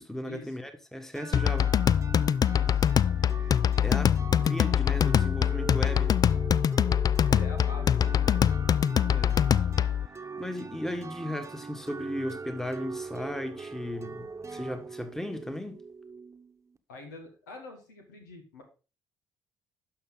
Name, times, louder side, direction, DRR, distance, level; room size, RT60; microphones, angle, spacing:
voice 1, 0.0-1.7 3.4-3.5 3.8-4.2 4.4-6.1 8.9-9.5 10.4-15.8, left 1 dB, 5° left, 1.5 m, -36 dB
sound 1, 1.1-16.8, right 4 dB, 30° right, 1.1 m, -42 dB
sound 2, 1.3-10.1, left 9 dB, 40° left, 0.4 m, -24 dB
voice 2, 2.5-2.8 7.3-8.4 16.9-18.6, left 2 dB, 90° left, 1.6 m, -45 dB
11.5 x 5.6 x 3.8 m
hypercardioid pair, 50°, 10 cm